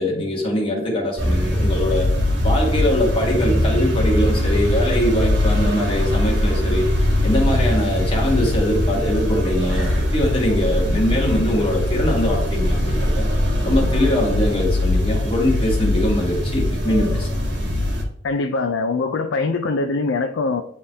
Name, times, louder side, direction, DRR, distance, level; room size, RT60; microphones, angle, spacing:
voice 1, 0.0-2.1 2.4-6.9 7.2-13.3 13.6-17.3, left 1 dB, 30° left, -2 dB, 1.7 m, -22 dB
sound 1, 1.2-18.0, left 1 dB, 65° right, 1.5 m, -21 dB
voice 2, 18.2-20.6, left 3 dB, 80° left, 5 dB, 0.5 m, -22 dB
9.9 x 3.7 x 2.8 m, 0.70 s
head